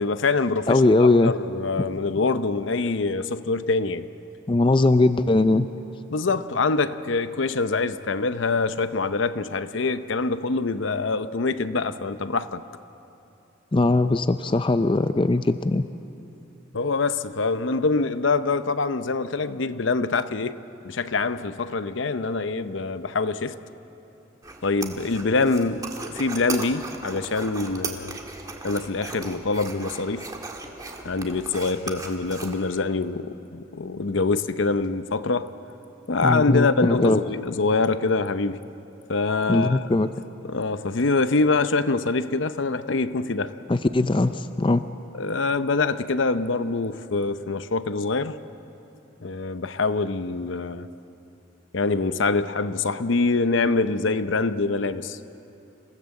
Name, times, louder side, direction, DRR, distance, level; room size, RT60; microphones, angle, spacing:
voice 1, 0.0-0.8 1.2-4.1 6.1-12.6 16.7-20.6 20.8-23.6 24.6-28.2 28.6-30.3 31.0-35.5 36.1-38.6 39.1-39.9 40.4-43.5 45.1-48.4 49.2-50.9 51.7-55.2, left 3 dB, 70° left, 12 dB, 0.7 m, -25 dB
voice 2, 0.7-1.3 4.5-5.7 13.7-15.9 36.2-37.2 39.5-40.1 43.7-44.8, left 2 dB, 25° left, 11 dB, 0.4 m, -20 dB
sound 1, 24.4-32.8, right 3 dB, 20° right, 1.7 m, -37 dB
27.5 x 17.0 x 7.7 m, 2.8 s
head